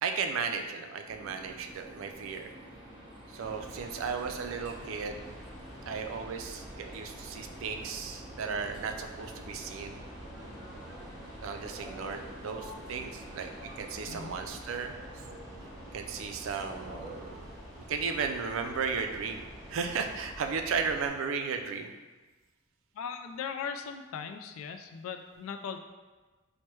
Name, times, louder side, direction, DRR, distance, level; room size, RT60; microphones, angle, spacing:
voice 1, 0.0-2.5 3.3-5.2 5.9-10.0 11.4-13.5 13.8-15.0 15.9-17.5 17.9-21.9, right 5 dB, 75° right, 5 dB, 0.3 m, -35 dB
sound 1, 1.0-17.4, right 1 dB, 25° right, 0.8 m, -48 dB
sound 2, 3.4-21.1, equal, ahead, 1.0 m, -48 dB
voice 2, 22.9-25.8, left 6 dB, 85° left, 7 dB, 0.3 m, -39 dB
4.5 x 2.1 x 3.0 m, 1.3 s
head